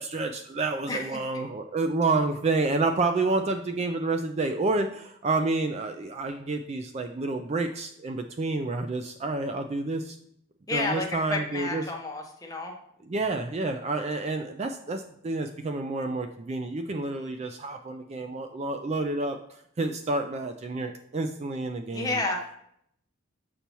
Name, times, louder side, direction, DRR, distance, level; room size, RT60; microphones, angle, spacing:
voice 1, 0.0-10.2 10.7-11.8 13.1-22.2, right 3 dB, 30° right, 6 dB, 0.3 m, -29 dB
voice 2, 0.9-1.2 10.7-12.7 21.9-22.6, left 3 dB, 15° left, 1 dB, 0.9 m, -31 dB
6.8 x 5.6 x 3.0 m, 0.70 s
head